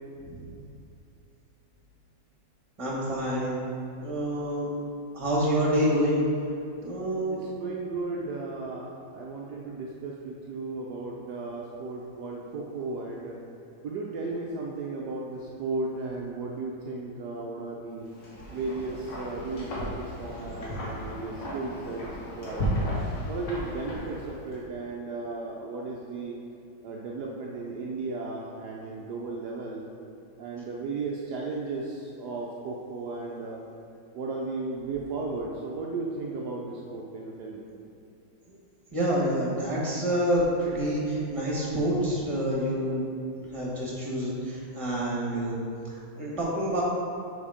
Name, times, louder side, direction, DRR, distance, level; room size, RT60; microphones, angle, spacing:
voice 1, 2.8-3.6 4.0-4.7 5.1-6.2 6.8-7.4 38.9-43.0 43.5-46.8, equal, 20° right, -5 dB, 1.6 m, -27 dB
voice 2, 7.3-13.4 13.8-18.0 18.5-22.1 22.4-22.7 23.3-26.3 26.8-29.8 30.4-33.6 34.1-37.6, right 3 dB, 70° right, -2 dB, 1.2 m, -35 dB
Wind, 18.0-24.5, equal, 75° left, 2.4 m, -34 dB
7.2 x 4.4 x 5.0 m, 2.7 s
omnidirectional pair, 1.9 m